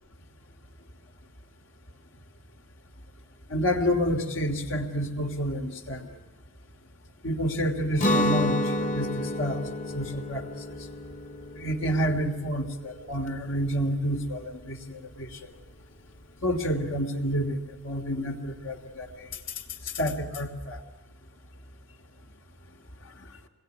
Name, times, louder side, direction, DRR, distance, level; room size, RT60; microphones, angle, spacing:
voice 1, 3.5-6.0 7.2-8.6 8.9-9.6 9.9-10.4 11.5-15.3 16.4-19.1 19.9-20.8, equal, 80° left, 4 dB, 3.1 m, -29 dB
Guitar, 8.0-13.8, left 1 dB, 40° left, 1.3 m, -30 dB
27.0 x 21.5 x 9.5 m, 1.1 s
head